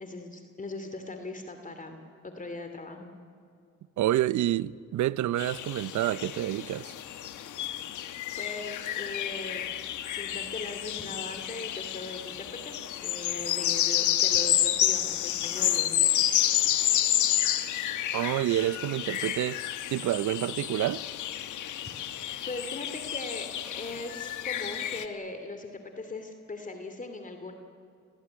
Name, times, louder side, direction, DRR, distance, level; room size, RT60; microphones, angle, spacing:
voice 1, 0.0-3.1 7.9-9.6 10.1-16.3 22.1-27.5, left 2 dB, 25° left, 2.7 m, -40 dB
voice 2, 4.0-6.9 18.1-21.0, right 13 dB, 70° right, 0.7 m, -28 dB
sound 1, 5.4-25.0, left 12 dB, 75° left, 1.5 m, -30 dB
29.5 x 19.0 x 9.8 m
cardioid pair, 90°, 30 cm